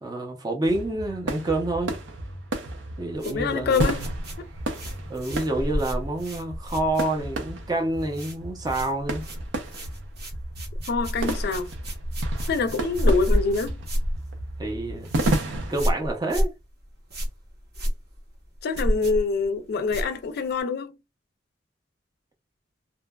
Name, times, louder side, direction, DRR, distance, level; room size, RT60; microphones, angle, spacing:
voice 1, 0.0-2.0 3.0-3.9 5.1-9.2 14.6-15.1 15.7-16.5, right 2 dB, 20° right, 0.5 m, -28 dB
sound 1, 0.6-16.0, right 1 dB, 90° right, 0.6 m, -33 dB
sound 2, 3.1-7.5 7.8-8.4 8.6-20.6, equal, 60° right, 0.8 m, -30 dB
voice 2, 3.3-4.1 4.4-4.5 10.9-11.7 12.5-13.8 18.6-21.0, left 4 dB, 60° left, 0.4 m, -25 dB
2.7 x 2.2 x 2.2 m
head